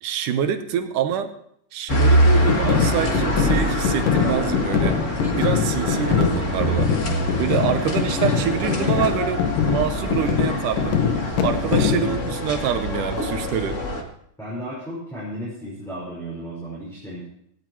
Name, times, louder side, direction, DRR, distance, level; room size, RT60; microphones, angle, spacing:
voice 1, 0.0-1.3 1.7-5.0 5.4-6.9 7.4-11.0 11.4-13.8, right 9 dB, 75° right, 8 dB, 2.5 m, -26 dB
sound 1, 1.9-14.0, equal, 40° left, 1.1 m, -24 dB
sound 2, 2.5-12.1, left 7 dB, 80° left, 2.9 m, -23 dB
voice 2, 14.4-17.3, right 1 dB, ahead, -8 dB, 5.1 m, -34 dB
17.0 x 17.0 x 3.1 m, 0.71 s
omnidirectional pair, 3.8 m